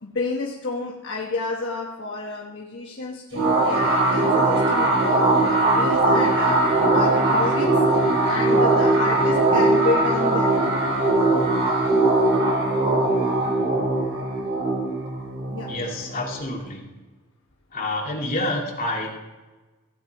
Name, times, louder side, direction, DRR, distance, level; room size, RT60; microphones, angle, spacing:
voice 1, 0.0-6.6 6.9-7.7 8.3-10.6 15.5-15.7, left 3 dB, 55° left, -2 dB, 1.3 m, -30 dB
sound 1, 3.3-16.6, right 2 dB, 60° right, 4.7 m, -20 dB
voice 2, 15.7-16.8 17.7-19.1, left 1 dB, 40° left, -2 dB, 2.4 m, -28 dB
17.0 x 8.8 x 4.7 m, 1.2 s
head